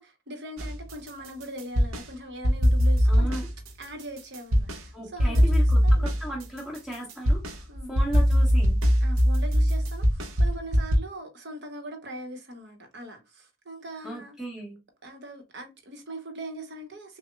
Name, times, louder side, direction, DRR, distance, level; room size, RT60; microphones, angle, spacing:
voice 1, 0.0-3.3 3.8-6.1 7.7-7.9 9.0-14.4 15.0-17.2, right 1 dB, 55° right, 0.9 m, -41 dB
sound 1, 0.6-2.1 2.4-4.9 5.2-11.0, equal, 90° right, 0.7 m, -22 dB
voice 2, 3.1-3.5 4.9-8.8 14.0-14.8, right 1 dB, 5° right, 1.2 m, -36 dB
5.8 x 2.1 x 2.2 m
head